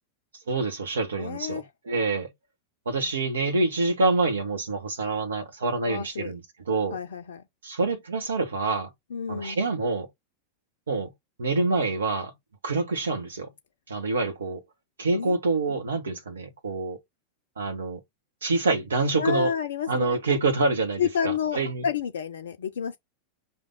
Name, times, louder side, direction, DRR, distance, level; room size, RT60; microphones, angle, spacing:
voice 1, 0.5-2.3 2.8-7.0 7.6-8.9 9.3-10.1 10.9-11.1 11.4-12.3 12.6-13.5 13.9-14.6 15.0-17.0 17.6-18.0 18.4-19.5 19.9-21.8, right 3 dB, 70° right, 1.1 m, -26 dB
voice 2, 1.2-1.7 5.8-6.3 6.9-7.4 9.1-9.6 15.1-15.4 19.2-20.2 21.0-23.0, left 8 dB, 65° left, 0.5 m, -30 dB
5.1 x 2.8 x 3.6 m
figure-of-eight pair, 90°, 0 cm